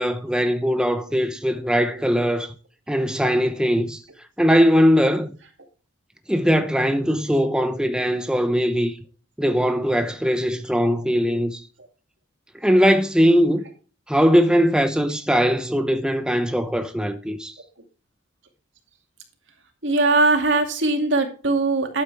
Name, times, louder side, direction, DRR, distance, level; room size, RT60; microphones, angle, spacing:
voice 1, 0.0-2.5 2.9-4.0 4.4-5.3 6.3-8.9 9.4-11.6 12.6-13.6 14.1-17.5, equal, 5° right, 0.8 m, -20 dB
voice 2, 19.8-22.0, right 2 dB, 70° right, 2.4 m, -21 dB
12.0 x 8.7 x 3.4 m
head